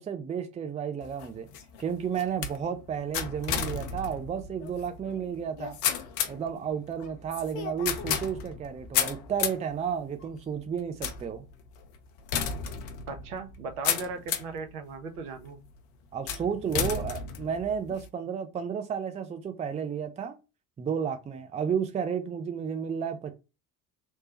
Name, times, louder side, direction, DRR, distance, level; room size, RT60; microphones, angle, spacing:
voice 1, 0.0-1.5 1.8-5.8 6.3-11.4 16.1-20.4 20.8-23.3, right 7 dB, 15° right, 0.5 m, -32 dB
sound 1, 1.0-14.6 15.2-15.7 16.3-18.1, left 7 dB, 60° left, 0.6 m, -33 dB
voice 2, 13.1-15.6, right 4 dB, 65° right, 0.8 m, -37 dB
3.0 x 2.1 x 2.8 m
figure-of-eight pair, 55°, 48 cm